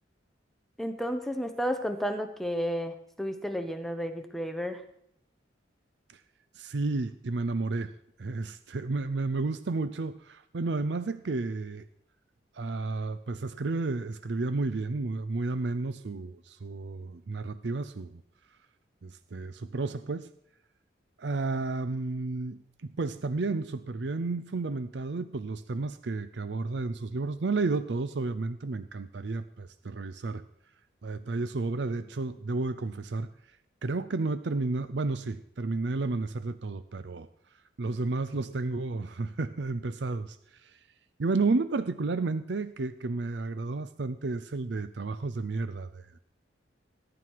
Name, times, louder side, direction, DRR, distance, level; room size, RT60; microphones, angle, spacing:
voice 1, 0.8-4.8, equal, ahead, 6 dB, 0.9 m, -32 dB
voice 2, 6.5-7.9 8.2-11.9 12.5-18.2 19.0-20.3 21.2-30.4 31.0-33.6 33.8-37.3 37.8-40.9 41.2-46.2, right 3 dB, 65° right, 13 dB, 0.5 m, -32 dB
20.5 x 11.0 x 4.7 m, 0.73 s
head